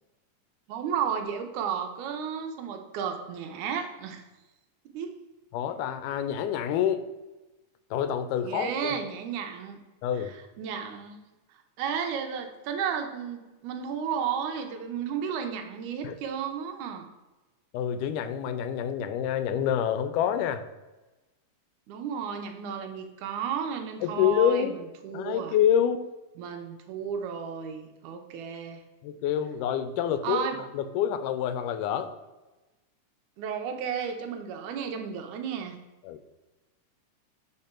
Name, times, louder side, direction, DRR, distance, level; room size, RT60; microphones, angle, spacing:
voice 1, 0.7-4.2 4.9-5.2 8.4-9.8 10.3-11.2 11.8-17.1 21.9-24.8 25.0-25.6 26.4-28.8 30.2-30.6 33.4-35.8, right 7 dB, 80° right, 5 dB, 2.0 m, -33 dB
voice 2, 5.5-7.1 7.9-8.9 10.0-10.3 16.0-16.2 17.7-20.6 24.0-24.7 25.1-26.0 29.0-30.5 30.7-32.1 36.0-36.2, left 9 dB, 85° left, 10 dB, 2.1 m, -27 dB
7.6 x 3.6 x 4.3 m, 1.1 s
omnidirectional pair, 3.6 m